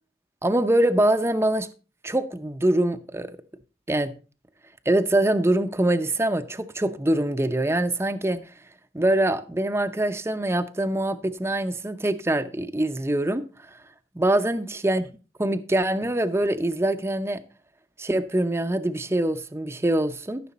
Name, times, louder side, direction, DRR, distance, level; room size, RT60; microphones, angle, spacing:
voice 1, 0.4-1.7 2.0-3.3 3.9-4.1 4.9-8.4 8.9-13.4 13.7-13.8 14.2-15.0 15.4-17.4 18.0-20.4, right 1 dB, 15° right, 0.6 m, -24 dB
13.5 x 6.3 x 4.2 m
head